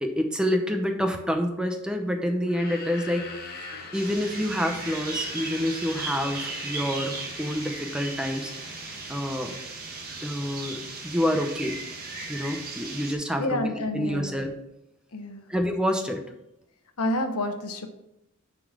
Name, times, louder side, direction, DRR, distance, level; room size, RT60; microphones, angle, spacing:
voice 1, 0.0-3.3 3.9-8.5 9.1-9.5 10.2-11.8 12.3-14.5 15.5-16.2, equal, 5° right, 4 dB, 0.7 m, -28 dB
sound 1, 2.4-9.6, left 3 dB, 45° left, 1.2 m, -43 dB
sound 2, 3.9-13.1, right 3 dB, 40° right, 1.5 m, -36 dB
voice 2, 13.4-14.3 15.1-15.4 17.0-17.9, left 1 dB, 85° left, 7 dB, 1.0 m, -28 dB
9.4 x 4.1 x 4.9 m, 0.85 s
head